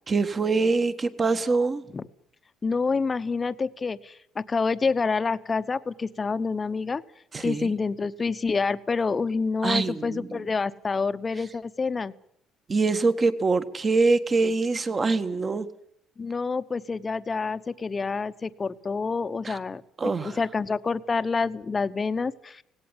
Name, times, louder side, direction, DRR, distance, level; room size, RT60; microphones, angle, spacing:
voice 1, 0.1-1.8 7.3-7.7 9.6-10.4 12.7-15.7 19.4-19.6 20.0-20.4, right 3 dB, 30° right, 11 dB, 1.6 m, -24 dB
voice 2, 2.6-7.0 7.4-12.1 16.2-19.8 20.2-22.6, left 4 dB, 30° left, 13 dB, 1.0 m, -27 dB
18.0 x 17.5 x 9.8 m, 0.67 s
cardioid pair, 105°, 0 cm